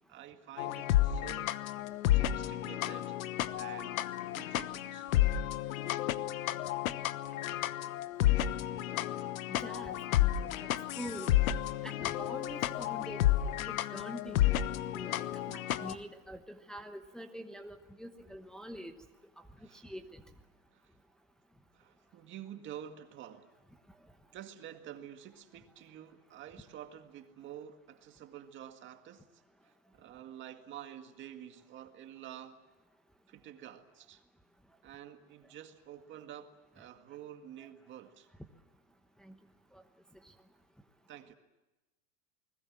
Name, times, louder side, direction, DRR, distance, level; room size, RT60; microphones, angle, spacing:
voice 1, 0.0-1.6 2.1-3.2 3.5-4.0 4.3-5.1 7.4-7.5 15.4-15.8 19.6-19.8 20.7-20.9 21.7-23.5 24.3-32.6 33.3-34.2 34.8-38.3 41.1-41.3, right 10 dB, 30° right, 2.0 m, -49 dB
sound 1, 0.6-15.9, left 13 dB, 85° left, 1.2 m, -31 dB
voice 2, 9.5-10.5 11.0-11.3 11.8-14.5 14.9-18.9 19.7-20.2 37.6-37.7 39.2-39.3 39.7-39.8, equal, ahead, 1.0 m, -45 dB
29.5 x 20.5 x 7.5 m
supercardioid pair, 155°, 40 cm